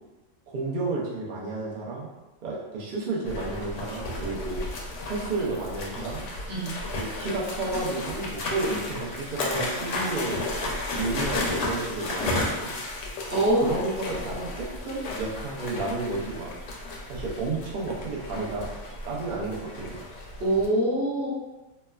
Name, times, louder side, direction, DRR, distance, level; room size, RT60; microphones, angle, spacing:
voice 1, 0.5-2.1 2.4-4.6 5.0-6.2 6.9-10.4 10.9-12.7 13.3-16.5 17.1-18.7 19.0-20.0, right 3 dB, 80° right, -5 dB, 0.4 m, -31 dB
sound 1, 3.2-20.7, left 2 dB, 65° left, 0.8 m, -33 dB
voice 2, 6.5-6.8 13.3-13.8 20.4-21.3, right 1 dB, 50° right, -7 dB, 0.9 m, -24 dB
3.1 x 2.1 x 2.2 m, 1.1 s
omnidirectional pair, 1.6 m